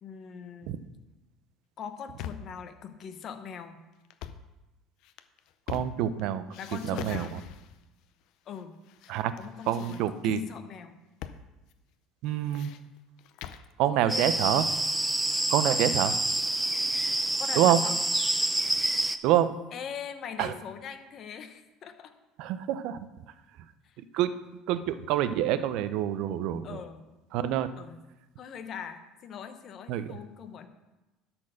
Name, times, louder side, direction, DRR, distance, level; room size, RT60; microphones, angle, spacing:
voice 1, 0.0-0.8 1.8-3.8 6.6-7.3 8.5-8.7 9.0-11.0 13.9-14.4 15.7-15.9 17.4-17.9 19.7-22.1 23.8-24.0 26.6-27.1 27.8-28.0 28.4-30.7, left 7 dB, 45° left, 8 dB, 1.0 m, -41 dB
sound 1, 1.8-2.6 4.0-4.5 5.0-6.2 6.5-7.8 8.5-9.1 9.4-10.4 11.2-11.4 11.7-11.8 12.2-13.7, left 9 dB, 65° left, 0.6 m, -42 dB
voice 2, 5.7-6.4 6.8-7.4 9.1-9.3 9.7-10.4 12.2-12.7 13.8-14.7 15.5-16.1 17.6-17.8 19.2-19.5 20.4-20.5 22.4-23.1 24.1-24.4 24.7-26.8 27.3-27.7 29.9-30.1, right 11 dB, 70° right, 12 dB, 0.7 m, -26 dB
sound 2, 14.1-19.2, right 1 dB, 10° right, 0.5 m, -27 dB
12.0 x 4.5 x 6.5 m, 1.1 s
cardioid pair, 125°, 0 cm